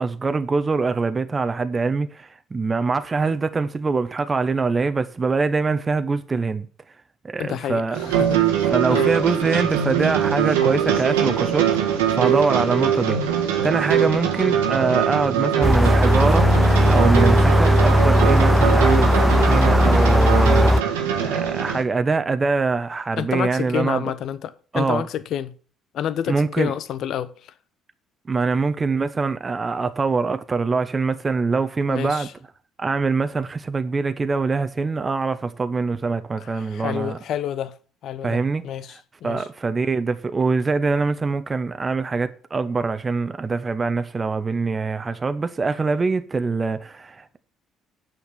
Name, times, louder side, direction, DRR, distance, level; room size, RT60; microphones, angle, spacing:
voice 1, 0.0-6.7 7.2-8.1 8.7-13.2 13.6-24.1 24.7-25.0 26.3-26.7 28.3-32.3 32.8-37.2 38.2-38.6 38.9-47.4, right 4 dB, 25° right, 1.0 m, -24 dB
voice 2, 7.4-7.8 8.1-8.5 8.9-9.1 23.2-25.5 25.9-27.3 31.9-32.3 36.6-37.7 38.0-39.5, left 10 dB, 55° left, 0.9 m, -28 dB
sound 1, 7.9-21.8, right 8 dB, 75° right, 1.5 m, -22 dB
sound 2, 15.6-20.8, equal, ahead, 0.6 m, -17 dB
9.4 x 6.5 x 7.1 m
figure-of-eight pair, 50°, 0 cm